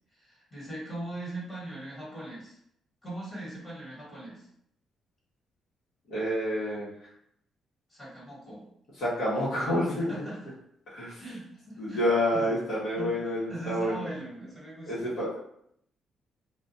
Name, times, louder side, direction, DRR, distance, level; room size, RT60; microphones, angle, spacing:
voice 1, 0.1-2.6 3.0-4.5 7.9-8.7 10.1-10.5 11.2-12.0 12.3-12.6 12.9-15.1, right 1 dB, 40° left, -7 dB, 1.5 m, -40 dB
voice 2, 6.1-6.9 9.0-10.1 10.9-11.2 11.8-13.9 14.9-15.4, equal, 70° left, -10 dB, 1.2 m, -28 dB
2.5 x 2.3 x 2.7 m, 0.71 s
cardioid pair, 90°, 0 cm